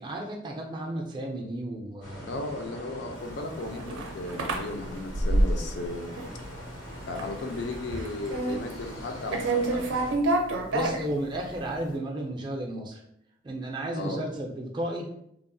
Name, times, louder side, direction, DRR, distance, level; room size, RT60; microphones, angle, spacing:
voice 1, 0.0-2.5 10.7-13.0 13.4-15.1, right 1 dB, 25° right, 0 dB, 0.3 m, -33 dB
sound 1, 2.0-10.2, equal, 90° left, 0.8 m, -43 dB
voice 2, 2.3-6.1 7.1-9.9 14.0-14.3, left 2 dB, 65° left, 4 dB, 0.4 m, -35 dB
sound 2, 3.4-5.9 6.2-6.7 7.0-7.4 7.6-9.0 9.3-11.6, right 2 dB, 85° right, 0.4 m, -27 dB
2.8 x 2.0 x 2.5 m, 0.74 s
head